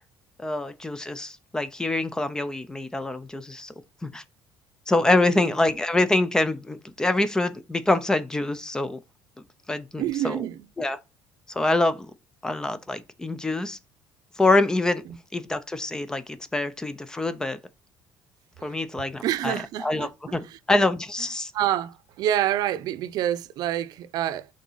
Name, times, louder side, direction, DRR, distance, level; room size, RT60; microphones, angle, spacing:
voice 1, 0.4-3.7 4.0-4.2 4.9-9.0 9.7-10.4 10.8-11.0 11.5-12.1 12.4-13.8 14.4-15.0 15.3-17.6 18.6-19.5 19.8-21.5, left 2 dB, 10° left, 0.6 m, -25 dB
voice 2, 10.0-10.7 18.6-18.7 19.2-20.6 21.5-24.5, right 12 dB, 55° right, 0.7 m, -27 dB
6.4 x 4.1 x 5.5 m
cardioid pair, 160°, 8 cm